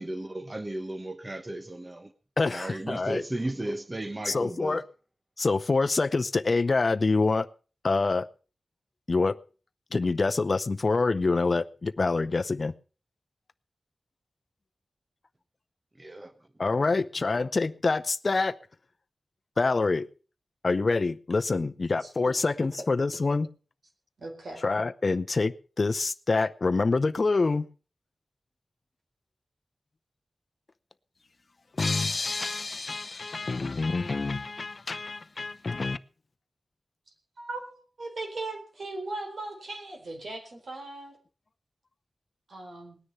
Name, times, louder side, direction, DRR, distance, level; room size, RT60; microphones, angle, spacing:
voice 1, 0.0-2.1 2.5-4.8 16.0-16.3, right 1 dB, 25° right, 1.1 m, -35 dB
voice 2, 2.4-3.2 4.2-4.8 5.4-7.5 7.8-8.3 9.1-9.4 9.9-12.7 16.6-18.6 19.6-20.1 20.6-23.5 24.6-27.7 31.7-36.0, left 3 dB, 50° left, 0.6 m, -26 dB
voice 3, 24.2-24.6 37.4-41.1 42.5-43.0, right 2 dB, 70° right, 4.4 m, -38 dB
19.5 x 10.0 x 5.6 m
wide cardioid pair, 90°, 0 cm